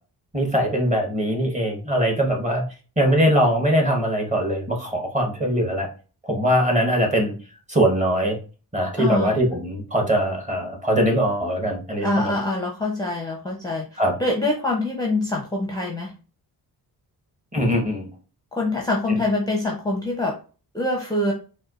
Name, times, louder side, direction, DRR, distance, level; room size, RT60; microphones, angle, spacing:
voice 1, 0.3-2.6 3.0-5.9 6.2-7.3 7.7-8.4 8.7-12.3 14.0-14.1 17.5-18.1 19.1-19.2, equal, 20° right, 1 dB, 1.0 m, -21 dB
voice 2, 9.0-9.4 12.0-16.1 18.5-20.4 20.7-21.3, left 2 dB, 10° left, -1 dB, 0.6 m, -25 dB
4.3 x 2.3 x 2.4 m, 0.35 s
wide cardioid pair, 120°, 39 cm